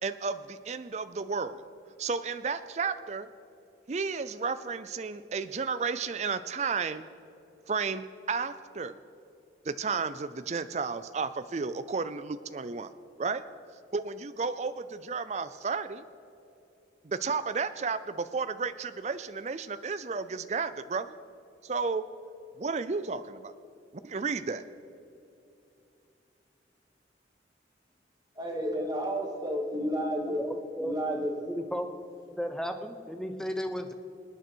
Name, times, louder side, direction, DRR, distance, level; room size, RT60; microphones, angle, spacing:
voice 1, 0.0-1.6 2.0-3.3 3.9-7.1 7.7-9.0 9.7-12.9 13.2-13.4 13.9-16.0 17.0-21.2 21.6-22.0 22.6-23.5 24.0-24.6, right 5 dB, 40° right, 12 dB, 0.4 m, -32 dB
voice 2, 28.3-30.4 30.8-31.3, equal, 20° right, 0 dB, 2.3 m, -31 dB
voice 3, 30.3-31.0 31.4-31.9 32.4-33.9, equal, 5° left, 6 dB, 0.8 m, -34 dB
26.0 x 9.3 x 4.5 m, 2.8 s
head